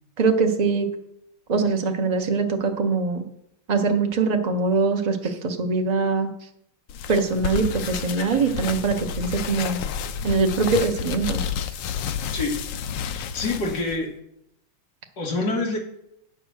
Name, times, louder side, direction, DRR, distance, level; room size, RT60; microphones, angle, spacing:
voice 1, 0.2-0.9 1.5-3.2 3.7-6.3 7.1-9.8 10.2-11.4, right 4 dB, 80° right, 3 dB, 0.3 m, -22 dB
sound 1, 6.9-14.0, left 7 dB, 75° left, 1.2 m, -30 dB
voice 2, 13.1-14.1 15.2-15.8, left 2 dB, 55° left, -1 dB, 2.1 m, -26 dB
9.1 x 5.8 x 6.4 m, 0.79 s
omnidirectional pair, 2.2 m